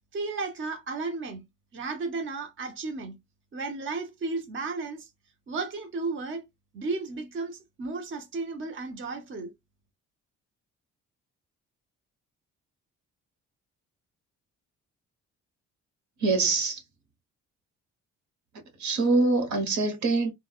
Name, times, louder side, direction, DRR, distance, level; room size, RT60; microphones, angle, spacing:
voice 1, 0.1-1.5 1.7-3.2 3.5-5.1 5.5-6.4 6.7-9.5, right 3 dB, 40° right, 0.8 m, -34 dB
voice 2, 16.2-16.8 18.8-20.3, right 3 dB, 70° right, 1.1 m, -24 dB
3.3 x 2.2 x 2.3 m
cardioid pair, 90°, 30 cm